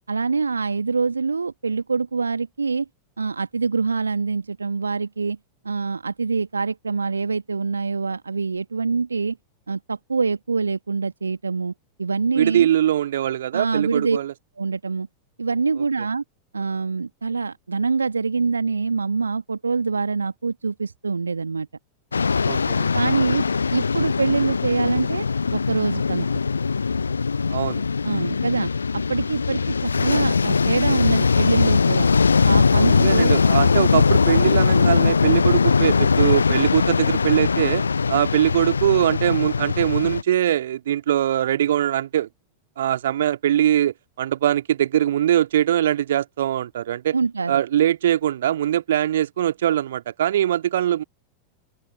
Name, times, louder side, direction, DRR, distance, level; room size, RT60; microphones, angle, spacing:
voice 1, 0.1-2.8 3.2-5.4 5.6-9.4 9.7-11.7 12.0-12.7 13.5-14.2 14.6-15.1 15.4-16.2 16.5-21.7 22.9-23.5 23.7-26.3 28.0-32.1 32.4-33.3 47.1-47.6, right 4 dB, 75° right, 1.5 m, -25 dB
voice 2, 12.4-14.3 22.5-22.9 27.5-27.8 32.7-37.8 38.1-42.3 42.8-47.2 47.5-51.0, right 11 dB, 60° right, 2.0 m, -22 dB
sound 1, 22.1-40.2, left 5 dB, 75° left, 0.4 m, -20 dB
open air
figure-of-eight pair, 90°, 0 cm